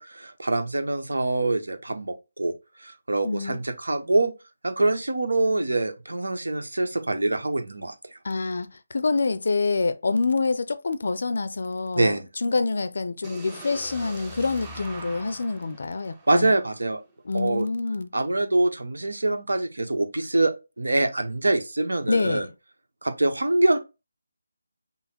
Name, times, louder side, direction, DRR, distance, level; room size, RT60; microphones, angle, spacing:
voice 1, 0.0-2.5 2.8-4.3 4.6-7.9 12.0-12.3 16.3-17.0 17.3-17.7 18.1-22.5 23.0-23.8, right 2 dB, 75° right, 1.0 m, -24 dB
voice 2, 3.2-3.6 8.2-16.5 17.2-18.1 22.1-22.5, left 3 dB, 60° left, 0.6 m, -26 dB
sound 1, 13.2-17.1, right 2 dB, 10° right, 0.7 m, -43 dB
5.6 x 2.1 x 4.2 m
figure-of-eight pair, 160°, 0 cm